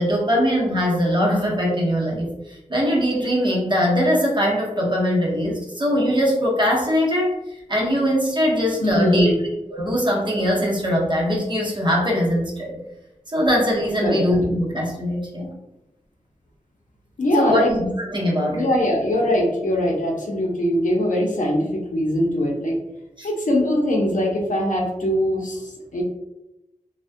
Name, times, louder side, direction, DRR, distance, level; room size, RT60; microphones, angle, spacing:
voice 1, 0.0-7.4 7.7-9.3 9.7-12.8 13.3-15.5 17.4-18.7 23.2-23.3, equal, 35° right, -3 dB, 0.7 m, -21 dB
voice 2, 8.8-9.4 14.0-14.3 17.2-17.7 18.5-22.8 23.2-26.0, left 1 dB, 70° left, -1 dB, 0.6 m, -22 dB
2.3 x 2.1 x 2.5 m, 0.90 s
wide cardioid pair, 85°, 14 cm